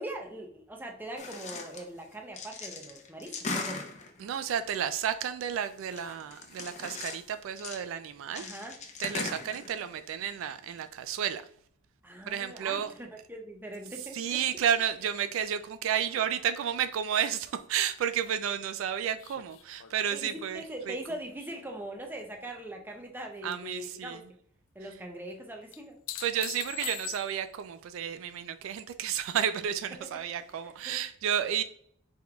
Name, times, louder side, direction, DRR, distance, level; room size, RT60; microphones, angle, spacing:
voice 1, 0.0-3.8 8.4-8.8 12.0-14.6 20.1-24.2 24.7-26.0 30.6-31.0, right 1 dB, 10° right, 0.6 m, -41 dB
sound 1, 1.2-1.8 2.1-4.6 5.6-7.3 7.6-7.8 8.3-10.2 10.5-10.6 10.8-10.9, left 3 dB, 35° left, 0.6 m, -39 dB
voice 2, 4.2-8.4 9.0-11.4 12.3-12.9 14.1-21.0 23.4-24.2 26.2-31.6, right 9 dB, 70° right, 0.3 m, -32 dB
sound 2, 19.2-22.7 23.0-23.6 25.7-27.6 30.2-30.3, left 13 dB, 70° left, 0.3 m, -44 dB
5.0 x 3.6 x 2.3 m
head